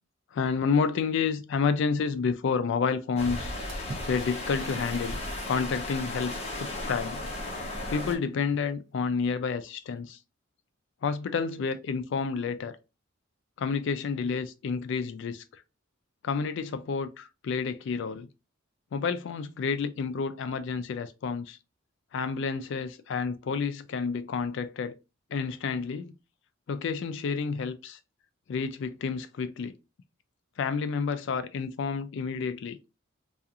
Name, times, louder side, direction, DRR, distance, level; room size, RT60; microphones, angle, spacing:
voice 1, 0.3-3.5 4.1-5.2 5.5-7.2 7.9-10.2 11.0-12.8 13.6-15.4 16.2-18.3 18.9-21.6 22.1-24.9 25.3-26.2 26.7-28.0 28.5-29.7 30.6-32.8, left 5 dB, 55° left, 0.3 m, -30 dB
sound 1, 3.2-8.2, left 1 dB, 30° left, 0.7 m, -35 dB
Water / Splash splatter, 3.7-5.8, right 2 dB, 55° right, 0.6 m, -44 dB
2.4 x 2.4 x 2.7 m
head